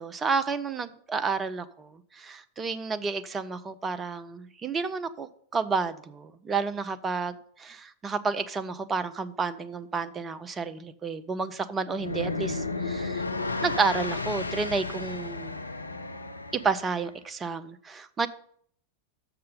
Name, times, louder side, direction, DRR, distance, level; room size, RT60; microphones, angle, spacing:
voice 1, 0.0-13.2 13.6-15.6 16.5-18.3, right 4 dB, 20° right, 0.5 m, -31 dB
sound 1, 11.9-17.0, left 3 dB, 80° left, 0.5 m, -33 dB
6.8 x 6.6 x 6.8 m
figure-of-eight pair, 90°, 0 cm